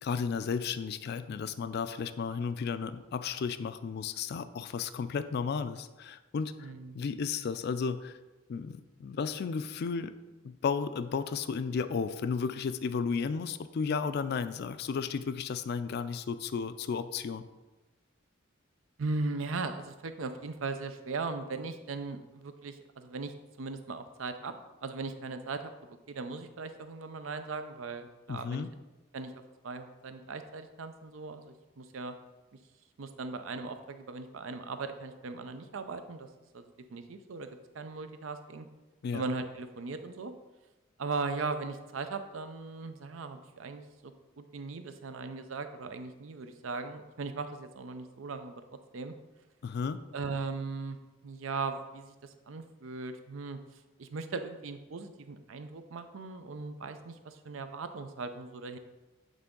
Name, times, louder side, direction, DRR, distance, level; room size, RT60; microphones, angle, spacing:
voice 1, 0.0-8.2 8.5-10.1 10.4-17.5 28.3-28.7 39.0-39.2 49.6-50.0, left 5 dB, 55° left, 12 dB, 0.4 m, -33 dB
voice 2, 6.6-7.0 19.0-23.3 23.6-24.5 24.8-25.7 26.1-28.6 29.1-32.1 33.0-36.3 36.5-38.7 39.1-40.3 41.0-48.5 48.9-49.1 50.1-51.0 51.2-53.6 54.0-58.8, right 4 dB, 90° right, 9 dB, 0.5 m, -38 dB
8.2 x 3.8 x 3.7 m, 1.1 s
head